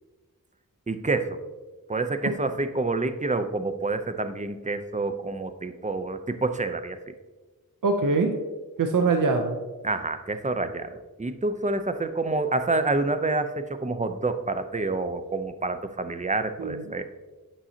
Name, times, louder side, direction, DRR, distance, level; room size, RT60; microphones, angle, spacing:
voice 1, 0.9-1.4 1.9-7.0 9.8-10.9 11.2-17.0, right 3 dB, 20° right, 9 dB, 0.6 m, -28 dB
voice 2, 7.8-8.4 8.8-9.6 16.6-16.8, right 3 dB, 60° right, 5 dB, 0.7 m, -23 dB
8.9 x 5.5 x 2.8 m, 1.2 s
cardioid pair, 45°, 36 cm